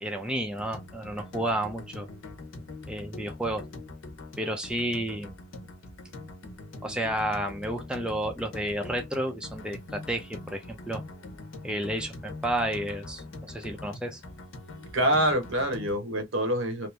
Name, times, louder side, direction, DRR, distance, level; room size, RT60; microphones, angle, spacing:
voice 1, 0.0-2.1 2.9-3.6 4.4-5.4 6.8-11.0 11.6-14.2, right 1 dB, 5° right, 0.5 m, -31 dB
sound 1, 0.5-16.0, left 2 dB, 70° left, 0.8 m, -43 dB
voice 2, 14.9-16.9, equal, 70° right, 1.0 m, -26 dB
3.0 x 2.6 x 3.3 m
head